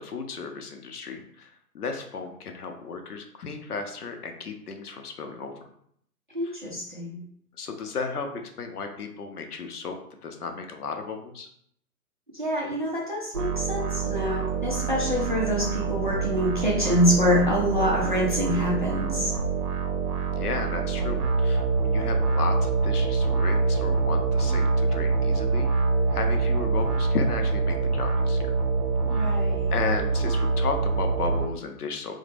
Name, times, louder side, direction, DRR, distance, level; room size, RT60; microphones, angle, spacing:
voice 1, 0.0-5.5 6.4-6.6 7.5-10.0 10.2-11.5 20.4-25.7 26.1-28.5 29.1-29.4 29.7-32.2, left 5 dB, 70° left, 5 dB, 0.6 m, -34 dB
voice 2, 6.3-7.2 12.3-19.3 29.1-29.7, equal, 35° right, -4 dB, 0.4 m, -26 dB
sound 1, 13.3-31.5, right 4 dB, 70° right, 0.7 m, -25 dB
2.8 x 2.1 x 3.2 m, 0.68 s
figure-of-eight pair, 135°, 48 cm